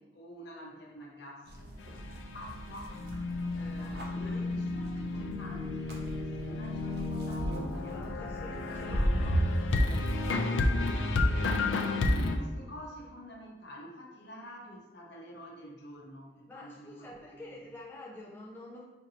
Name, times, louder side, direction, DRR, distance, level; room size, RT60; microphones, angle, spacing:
voice 1, 0.0-1.8 2.3-3.0 3.5-8.4 8.7-9.4 9.9-10.1 11.0-17.6, equal, 65° left, -2 dB, 0.8 m, -48 dB
sound 1, 1.4-10.4, equal, 60° right, 0.7 m, -36 dB
sound 2, 1.8-12.4, left 2 dB, 90° left, 0.4 m, -32 dB
voice 2, 4.1-4.5 7.7-9.3 9.8-10.3 16.5-18.8, left 1 dB, 10° left, -4 dB, 0.4 m, -48 dB
4.3 x 2.6 x 2.8 m, 1.1 s
head